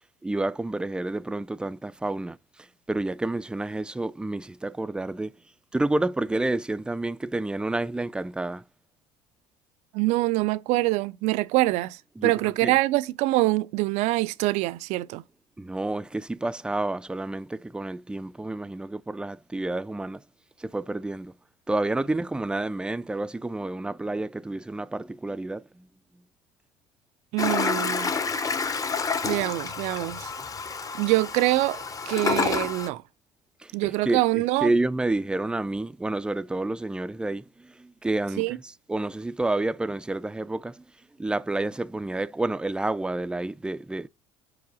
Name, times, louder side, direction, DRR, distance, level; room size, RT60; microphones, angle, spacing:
voice 1, 0.2-2.4 2.9-5.3 5.7-8.6 12.2-12.7 15.6-20.2 20.6-21.3 21.7-25.9 33.6-38.6 38.9-40.8 41.2-44.1, right 2 dB, 5° right, 0.4 m, -29 dB
voice 2, 9.9-15.2 27.3-28.1 29.2-30.3 30.9-31.8 32.1-33.0 33.7-34.7 38.4-38.6, right 19 dB, 70° right, 0.4 m, -25 dB
Toilet flush, 27.4-32.9, left 5 dB, 30° left, 0.8 m, -29 dB
4.8 x 4.7 x 6.1 m
supercardioid pair, 80°, 12 cm